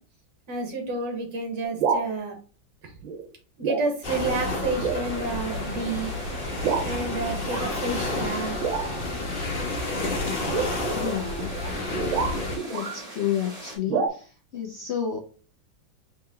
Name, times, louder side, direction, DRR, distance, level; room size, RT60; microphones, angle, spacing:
voice 1, 0.5-2.4 2.8-3.0 3.6-6.1 6.8-8.6, right 3 dB, 65° right, 2 dB, 2.1 m, -30 dB
sound 1, 1.6-2.1 3.0-3.3 3.6-3.9 4.3-4.4 4.8-5.1 5.7-5.9 6.6-6.9 7.4-7.7 8.6-9.1 10.4-13.0 13.9-14.1, right 6 dB, 80° right, 1.8 m, -28 dB
sound 2, 4.0-12.6, left 2 dB, 35° left, 1.2 m, -30 dB
sound 3, 5.0-13.8, right 1 dB, 40° right, 3.0 m, -43 dB
voice 2, 10.9-11.6 12.7-15.2, left 9 dB, 70° left, 0 dB, 0.6 m, -30 dB
5.0 x 3.7 x 2.8 m, 0.37 s
omnidirectional pair, 2.1 m